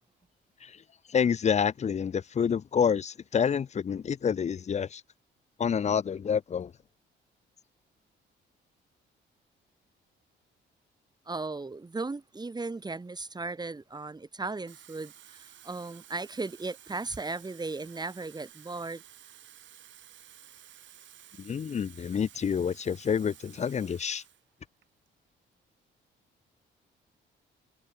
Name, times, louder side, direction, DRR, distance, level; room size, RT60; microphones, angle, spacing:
voice 1, 1.1-5.0 5.6-6.7 21.4-24.2, left 7 dB, 35° left, 0.6 m, -28 dB
voice 2, 11.3-19.0, right 3 dB, 20° right, 2.9 m, -36 dB
Water tap faucet / Fill (with liquid), 14.5-24.4 24.8-25.1, right 11 dB, 70° right, 7.5 m, -53 dB
cardioid pair, 90°, 20 cm